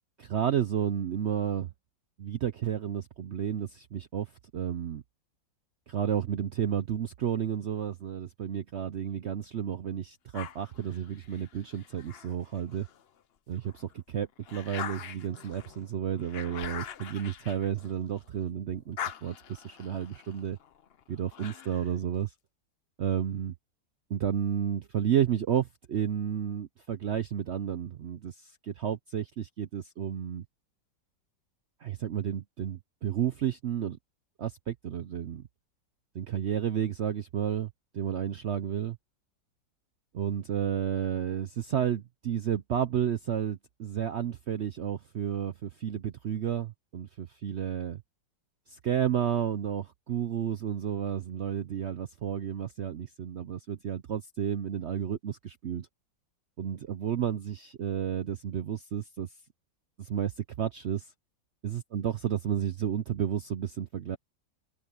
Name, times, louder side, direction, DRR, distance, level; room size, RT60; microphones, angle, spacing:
voice 1, 0.2-1.7 2.2-5.0 5.9-12.9 13.5-20.6 21.1-22.3 23.0-23.5 24.1-30.4 31.8-34.0 34.4-35.4 36.1-39.0 40.1-48.0 48.7-55.9 56.6-59.3 60.0-61.1 61.6-64.2, right 9 dB, 75° right, 0.6 m, -32 dB
sound 1, 10.3-13.0 13.5-18.4 18.7-22.0, left 9 dB, 70° left, 0.5 m, -43 dB
open air
omnidirectional pair, 2.0 m